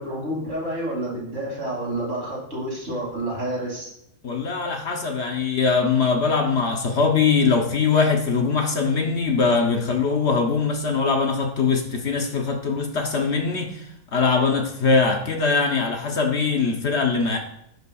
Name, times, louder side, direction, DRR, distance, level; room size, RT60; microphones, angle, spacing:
voice 1, 0.0-3.9, right 1 dB, 60° right, -5 dB, 3.1 m, -29 dB
voice 2, 4.2-13.9 14.1-17.4, left 4 dB, 55° left, 2 dB, 1.1 m, -22 dB
10.5 x 5.5 x 2.3 m, 0.79 s
omnidirectional pair, 1.4 m